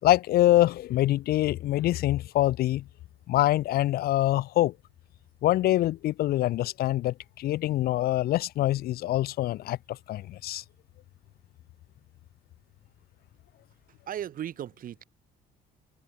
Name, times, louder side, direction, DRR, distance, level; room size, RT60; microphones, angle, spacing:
voice 1, 0.0-2.8 3.3-4.7 5.4-10.6, left 15 dB, 65° left, 0.8 m, -25 dB
voice 2, 14.1-15.0, right 10 dB, 55° right, 2.9 m, -36 dB
cardioid pair, 110°, 17 cm